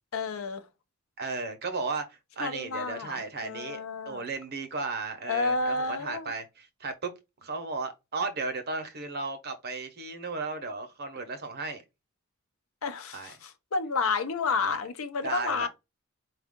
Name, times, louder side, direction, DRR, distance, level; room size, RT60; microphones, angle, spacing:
voice 1, 0.1-0.6 2.4-4.2 5.3-6.3 12.8-15.7, left 4 dB, 70° left, 0.6 m, -30 dB
voice 2, 1.2-7.1 7.4-11.8 13.1-13.3 14.6-14.8 15.2-15.7, right 3 dB, 50° right, 0.8 m, -35 dB
4.4 x 2.4 x 3.6 m
head